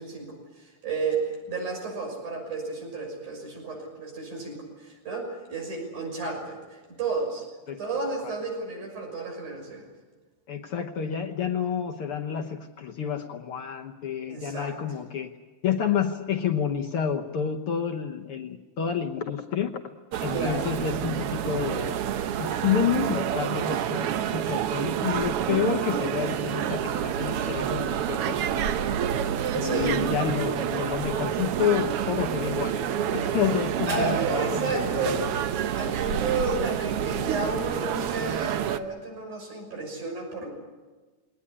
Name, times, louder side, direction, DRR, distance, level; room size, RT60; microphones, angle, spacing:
voice 1, 0.0-7.4 7.8-9.9 14.3-14.7 20.3-20.7 29.6-30.0 33.2-33.4 33.9-35.4 35.7-40.5, right 3 dB, 85° right, 2 dB, 7.7 m, -32 dB
voice 2, 10.5-15.3 15.6-19.7 20.2-22.0 22.4-28.7 29.5-32.7 33.0-35.3, left 8 dB, 60° left, 4 dB, 1.6 m, -29 dB
sound 1, 20.1-38.8, right 9 dB, 65° right, 1.5 m, -28 dB
20.5 x 19.0 x 9.9 m, 1.3 s
omnidirectional pair, 3.4 m